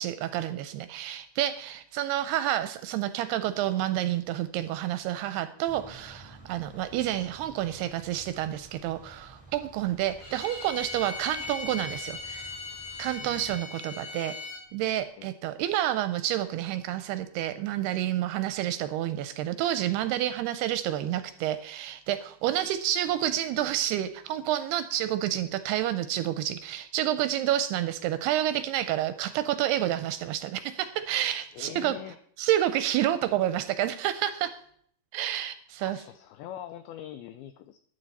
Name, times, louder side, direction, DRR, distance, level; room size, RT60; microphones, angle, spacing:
voice 1, 0.0-12.5 13.0-14.4 14.7-32.0 32.4-34.5 35.1-36.0, right 12 dB, 80° right, 12 dB, 2.4 m, -29 dB
sound 1, 5.7-13.6, right 1 dB, 5° left, 2.6 m, -52 dB
Bowed string instrument, 10.2-14.6, left 4 dB, 50° left, 6.8 m, -39 dB
voice 2, 13.1-13.5 15.2-15.3 31.5-32.2 35.8-37.8, left 11 dB, 85° left, 10 dB, 2.1 m, -43 dB
13.0 x 11.5 x 4.1 m, 0.62 s
omnidirectional pair, 5.0 m